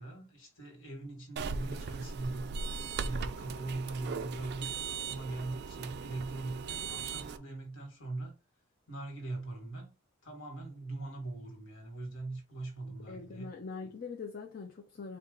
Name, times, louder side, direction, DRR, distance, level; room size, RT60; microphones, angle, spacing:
voice 1, 0.0-2.5 3.0-8.4 8.9-9.9 10.2-13.5, right 2 dB, 65° left, 1.5 m, -41 dB
sound 1, 1.4-7.4, right 5 dB, 50° right, 0.3 m, -38 dB
voice 2, 13.1-15.2, left 4 dB, 45° left, 0.5 m, -43 dB
4.3 x 2.3 x 3.7 m
head